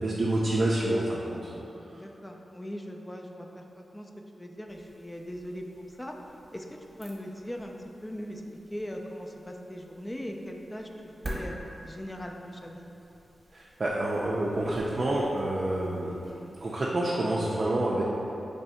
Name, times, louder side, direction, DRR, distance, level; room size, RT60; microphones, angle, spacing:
voice 1, 0.0-1.5 13.5-16.2 16.6-18.0, right 1 dB, 50° right, -5 dB, 0.4 m, -28 dB
voice 2, 1.9-4.1 4.4-6.2 6.5-7.8 8.0-8.4 8.7-11.5 11.8-12.9, equal, 20° left, 2 dB, 0.3 m, -40 dB
sound 1, 4.7-16.9, right 1 dB, 30° right, 1.0 m, -47 dB
3.2 x 2.6 x 4.2 m, 3.0 s
cardioid pair, 55°, 0 cm